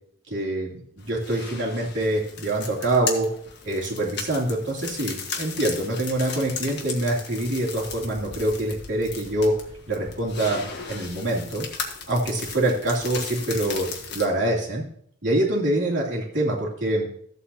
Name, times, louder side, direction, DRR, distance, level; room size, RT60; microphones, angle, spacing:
voice 1, 0.3-3.3 3.6-9.5 9.9-11.6 12.1-13.9 14.1-14.8 15.2-17.1, right 1 dB, 70° right, -4 dB, 2.9 m, -25 dB
sound 1, 1.0-14.3, left 5 dB, 60° left, 1.6 m, -36 dB
14.0 x 8.0 x 2.8 m, 0.66 s
head